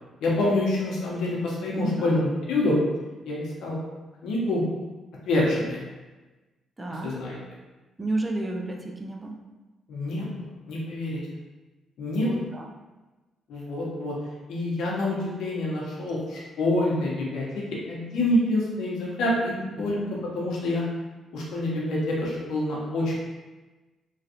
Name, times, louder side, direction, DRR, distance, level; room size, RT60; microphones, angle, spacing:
voice 1, 0.2-2.8 3.2-3.8 4.2-4.6 5.3-5.8 7.0-7.4 9.9-11.2 12.0-12.5 13.5-14.1 14.5-20.0 20.3-20.8 21.3-23.2, left 1 dB, 80° left, -4 dB, 0.9 m, -27 dB
voice 2, 1.8-2.1 6.8-7.1 8.0-9.4 12.2-12.7 19.6-20.2, right 2 dB, 15° right, 1 dB, 0.4 m, -32 dB
3.1 x 2.4 x 2.8 m, 1.2 s
cardioid pair, 90°, 0 cm